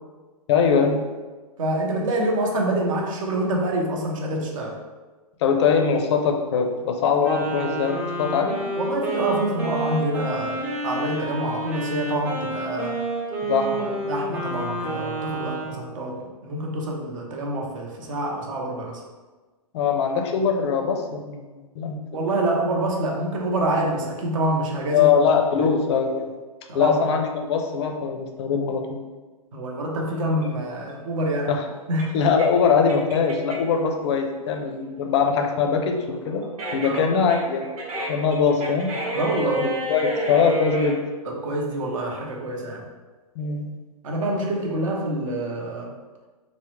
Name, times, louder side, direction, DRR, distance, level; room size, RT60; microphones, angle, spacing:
voice 1, 0.5-1.0 5.4-8.6 13.4-14.0 15.4-15.6 19.7-21.4 21.8-22.2 24.9-26.3 26.7-29.0 31.5-31.6 32.1-37.7 38.1-38.9 39.6-41.0 43.4-43.7, left 6 dB, 45° left, 4 dB, 0.4 m, -22 dB
voice 2, 1.6-4.8 8.8-13.0 14.1-19.0 22.1-25.1 25.6-25.7 26.7-27.0 29.5-31.5 31.9-32.2 36.8-37.1 39.1-39.6 41.3-42.9 44.0-45.9, right 1 dB, 60° right, 0 dB, 0.8 m, -26 dB
Wind instrument woodwind instrument, 7.2-15.8, right 2 dB, 10° right, 0.4 m, -29 dB
sound 1, 30.4-33.8 34.2-40.9, equal, 80° right, 1.1 m, -31 dB
3.5 x 2.0 x 3.0 m, 1.3 s
hypercardioid pair, 145°, 19 cm